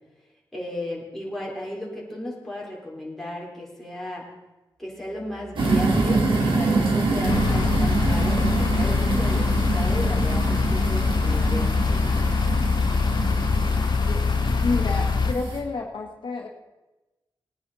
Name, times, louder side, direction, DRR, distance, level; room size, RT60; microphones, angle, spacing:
voice 1, 0.5-4.3 4.8-12.2, left 1 dB, 5° left, -4 dB, 4.1 m, -35 dB
sound 1, 4.9-8.8 9.1-13.7, left 1 dB, 55° right, 3.6 m, -39 dB
sound 2, 5.6-15.6, right 3 dB, 90° right, 2.6 m, -26 dB
sound 3, 7.3-15.3, left 4 dB, 60° left, 0.8 m, -23 dB
voice 2, 14.0-16.5, left 3 dB, 80° left, 1 dB, 1.6 m, -30 dB
19.5 x 9.6 x 4.1 m, 1.1 s
wide cardioid pair, 100°, 8 cm